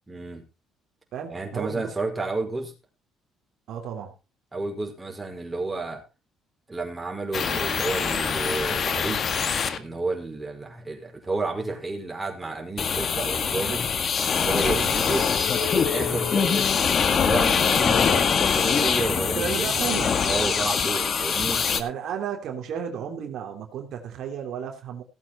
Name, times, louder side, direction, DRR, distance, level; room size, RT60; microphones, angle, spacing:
voice 1, 0.1-0.4 1.3-2.7 4.5-6.0 6.7-9.2 9.7-13.9 14.4-15.3 15.6-16.7 17.2-19.9 20.2-21.6, right 3 dB, 15° right, 1 dB, 5.4 m, -31 dB
voice 2, 1.1-1.9 3.7-4.1 14.6-14.9 19.3-20.2 21.8-25.0, right 8 dB, 65° right, 3 dB, 3.1 m, -33 dB
sound 1, 7.3-9.8 12.8-21.8, left 6 dB, 50° left, 1.9 m, -23 dB
17.0 x 8.3 x 4.3 m, 0.29 s
cardioid pair, 90°, 0 cm